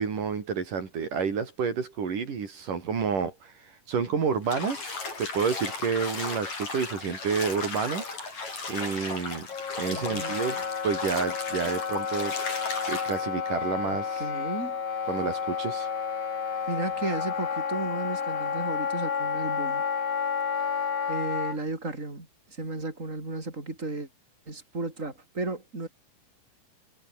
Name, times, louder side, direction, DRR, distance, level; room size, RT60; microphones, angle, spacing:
voice 1, 0.0-8.0 8.7-9.5 9.8-12.4 12.9-14.2 15.1-15.9, right 6 dB, 70° right, 5.2 m, -30 dB
Bathtub (filling or washing), 4.4-13.2, left 3 dB, 55° left, 8.2 m, -35 dB
Wind instrument woodwind instrument, 9.5-21.6, left 6 dB, 85° left, 5.6 m, -31 dB
voice 2, 9.9-10.5 13.8-14.8 16.7-19.8 21.1-24.1 24.5-25.9, right 2 dB, 20° right, 6.0 m, -34 dB
omnidirectional pair, 3.9 m